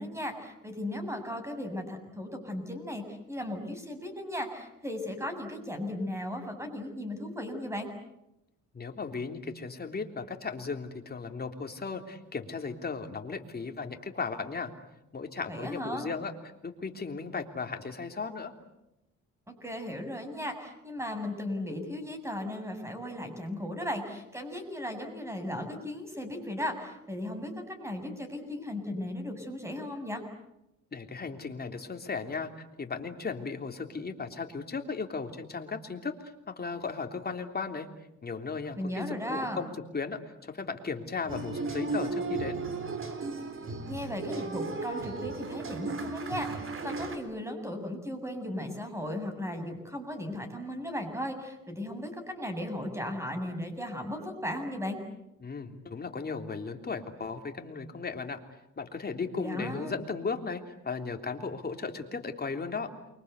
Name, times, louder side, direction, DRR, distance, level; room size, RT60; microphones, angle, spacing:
voice 1, 0.0-7.9 15.5-16.1 19.5-30.2 38.8-39.6 43.9-55.0 59.4-60.0, left 1 dB, 10° right, 6 dB, 7.3 m, -36 dB
voice 2, 8.7-14.7 15.1-16.3 16.6-18.5 30.9-36.1 36.5-37.9 38.2-42.6 55.4-58.4 58.8-62.9, left 4 dB, 30° left, 5 dB, 3.4 m, -36 dB
sound 1, 41.3-47.2, right 3 dB, 45° right, 4.0 m, -35 dB
29.0 x 24.0 x 8.3 m, 0.87 s
cardioid pair, 90°, 30 cm